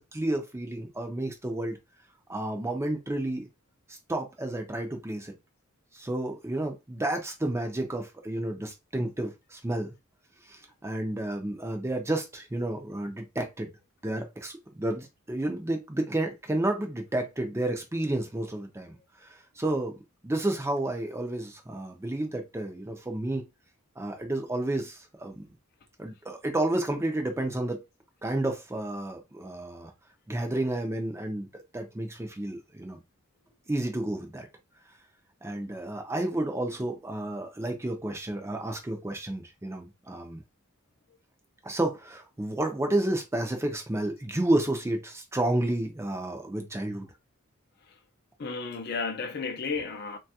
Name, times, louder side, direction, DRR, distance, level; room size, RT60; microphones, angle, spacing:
voice 1, 0.0-1.8 2.3-3.5 3.9-5.3 5.9-9.9 10.5-13.7 14.0-19.0 19.2-20.0 20.2-23.4 24.0-25.4 26.0-27.8 28.2-29.9 30.3-33.0 33.7-34.5 35.4-40.4 41.6-47.1, right 1 dB, 10° right, 0.4 m, -31 dB
voice 2, 48.4-50.2, left 4 dB, 45° left, 0.5 m, -33 dB
3.2 x 2.3 x 2.7 m
head